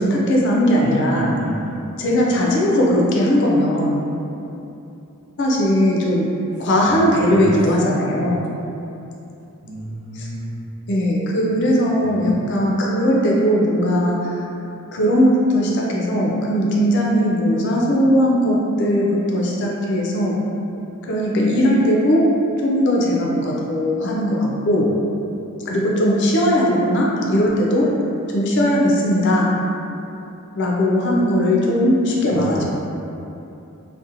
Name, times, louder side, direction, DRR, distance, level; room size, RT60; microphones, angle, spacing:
voice 1, 0.0-1.3 2.0-4.0 5.4-6.3 6.6-8.4 10.2-10.3 10.9-14.4 14.9-20.4 21.0-22.3 22.6-24.9 25.7-27.9 28.3-29.5 30.6-32.7, equal, 50° left, -3 dB, 0.4 m, -18 dB
voice 2, 0.8-1.8 6.6-7.6 7.8-8.3 9.6-10.6 12.0-12.4 24.7-24.8 32.3-32.7, right 1 dB, 75° right, -4 dB, 0.5 m, -31 dB
2.7 x 2.1 x 2.5 m, 2.8 s
head